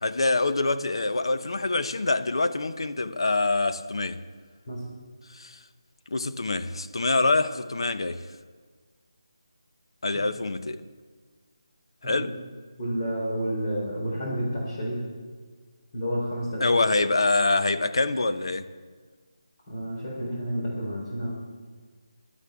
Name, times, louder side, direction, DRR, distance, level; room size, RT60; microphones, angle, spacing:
voice 1, 0.0-4.2 5.3-5.6 6.1-8.2 10.0-10.8 12.0-12.3 16.6-18.7, left 3 dB, 70° left, 0.8 m, -25 dB
voice 2, 12.8-15.0 15.9-16.6 19.7-21.3, equal, 30° left, 3.9 m, -30 dB
17.5 x 12.0 x 3.6 m
figure-of-eight pair, 165°, 3 cm